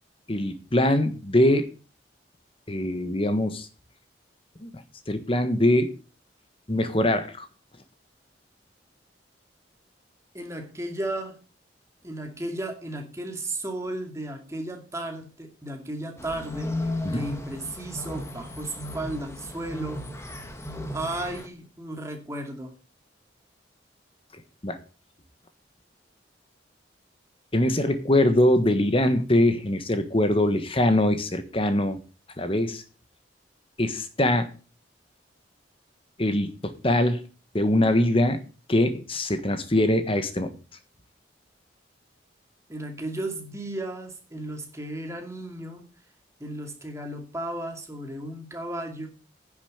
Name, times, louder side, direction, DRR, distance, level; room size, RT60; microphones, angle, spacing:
voice 1, 0.3-1.7 2.7-3.7 4.6-4.7 5.1-5.9 6.7-7.5 17.0-17.3 24.6-24.8 27.5-32.0 32.4-32.8 33.8-34.5 36.2-37.2 37.5-38.4 38.7-40.5, left 1 dB, 30° left, 10 dB, 1.4 m, -23 dB
voice 2, 10.3-11.4 12.0-20.0 20.9-22.7 42.7-45.8 46.4-49.1, right 1 dB, 15° right, 3 dB, 2.4 m, -34 dB
sound 1, 16.2-21.5, left 1 dB, 15° left, 1.4 m, -35 dB
10.5 x 7.2 x 6.6 m, 0.36 s
head